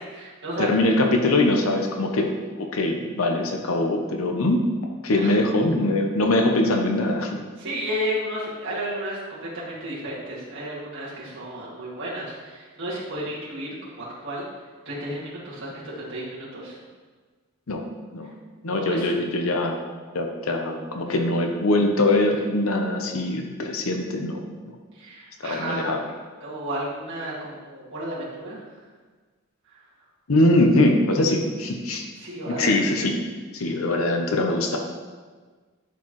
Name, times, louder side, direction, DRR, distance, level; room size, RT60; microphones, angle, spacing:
voice 1, 0.0-0.7 5.1-5.4 7.6-14.5 14.9-16.8 18.7-19.1 21.1-21.2 24.9-26.0 26.4-28.8 29.7-29.8 32.2-33.1 33.6-33.9, right 1 dB, 60° right, -8 dB, 2.1 m, -33 dB
voice 2, 0.6-2.3 2.6-4.6 5.0-7.4 17.7-17.8 18.1-18.3 18.6-19.8 20.1-24.8 25.4-26.0 30.3-32.0 32.5-33.2 33.5-34.8, left 2 dB, 75° left, 3 dB, 0.7 m, -22 dB
11.0 x 4.6 x 3.1 m, 1.4 s
head